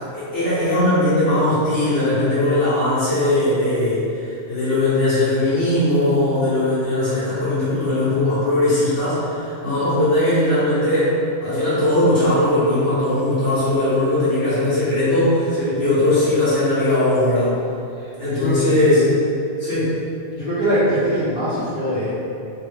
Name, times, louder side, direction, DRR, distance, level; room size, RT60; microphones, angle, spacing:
voice 1, 0.1-11.1 11.4-17.6 18.2-19.0 19.6-19.9, left 1 dB, 90° left, -14 dB, 1.7 m, -19 dB
voice 2, 18.0-19.1 20.3-22.1, equal, 50° left, -15 dB, 1.1 m, -22 dB
3.5 x 2.2 x 3.2 m, 2.7 s
omnidirectional pair, 1.2 m